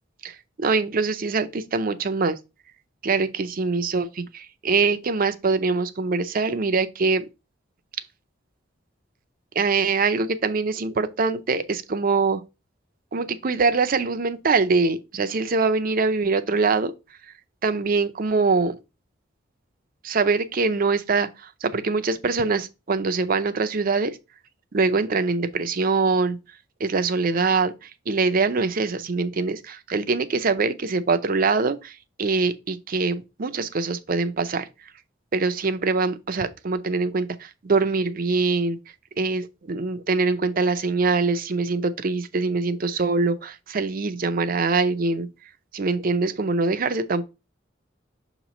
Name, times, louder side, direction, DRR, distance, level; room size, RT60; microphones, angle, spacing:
voice 1, 0.2-2.4 3.0-7.2 9.6-12.4 13.1-16.9 17.6-18.8 20.0-24.2 24.7-26.4 26.8-34.7 35.3-38.8 39.2-45.3 45.7-47.2, right 4 dB, 50° right, 0.6 m, -23 dB
6.4 x 3.1 x 5.1 m
head